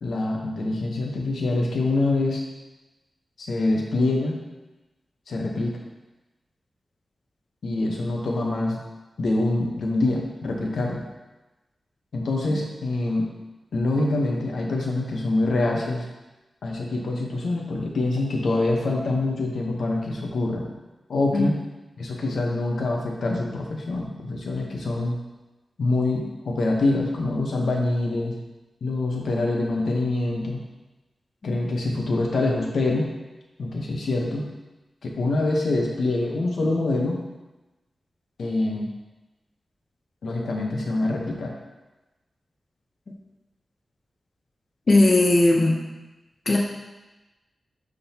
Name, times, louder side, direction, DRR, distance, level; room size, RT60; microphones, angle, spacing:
voice 1, 0.0-2.4 3.4-4.4 5.3-5.7 7.6-8.8 9.2-11.0 12.1-13.3 13.7-16.0 16.6-20.6 21.1-21.6 22.0-25.2 25.8-28.3 28.8-30.6 31.4-33.1 33.6-34.4 35.0-37.2 38.4-38.9 40.2-41.5, left 2 dB, 85° left, 0 dB, 1.0 m, -25 dB
voice 2, 44.9-45.8 46.5-46.6, left 2 dB, 45° left, -2 dB, 0.8 m, -18 dB
11.0 x 3.9 x 2.9 m, 1.1 s
wide cardioid pair, 130°, 0 cm